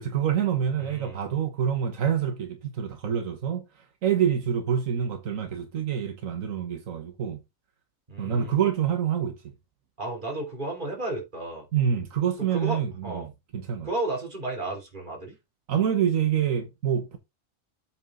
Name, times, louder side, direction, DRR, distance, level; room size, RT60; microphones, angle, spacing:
voice 1, 0.0-3.6 4.0-7.4 8.2-9.4 11.7-13.9 15.7-17.2, right 8 dB, 85° right, 1.5 m, -26 dB
voice 2, 0.8-1.2 8.1-8.5 10.0-11.7 12.4-13.3 13.8-15.4, right 2 dB, 35° right, 3.4 m, -33 dB
8.0 x 5.1 x 3.7 m
omnidirectional pair, 1.3 m